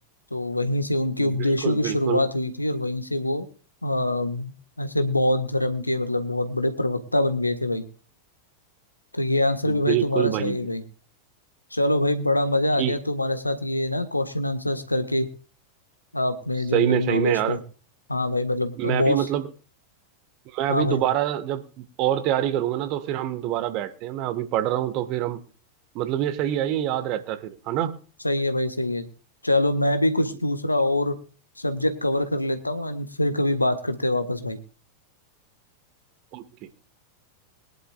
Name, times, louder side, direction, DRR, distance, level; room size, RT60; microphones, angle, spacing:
voice 1, 0.3-3.5 3.8-7.8 9.1-10.8 11.7-15.3 16.1-17.6 18.1-19.2 20.7-21.0 28.2-29.1 29.4-31.1 31.6-34.6, left 1 dB, 85° left, 8 dB, 1.5 m, -24 dB
voice 2, 1.2-2.2 9.7-10.7 12.8-12.9 16.7-17.6 18.8-19.5 20.5-25.4 25.9-27.9 36.3-36.4, right 12 dB, 40° right, 11 dB, 1.5 m, -26 dB
22.0 x 11.0 x 2.4 m, 0.37 s
figure-of-eight pair, 90°, 0 cm